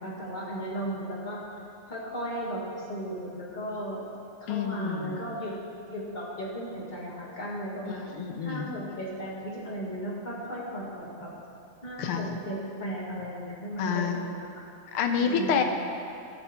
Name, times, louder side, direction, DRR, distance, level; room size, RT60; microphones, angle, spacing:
voice 1, 0.0-1.4 1.9-4.0 4.4-5.6 5.9-8.0 8.4-11.3 11.8-14.5 15.2-15.6, right 1 dB, 25° left, -5 dB, 1.6 m, -35 dB
voice 2, 4.5-5.2 7.9-8.7 12.0-12.3 13.8-14.2 14.9-15.6, left 7 dB, 80° left, 5 dB, 1.7 m, -28 dB
12.5 x 6.9 x 4.3 m, 2.6 s
omnidirectional pair, 2.4 m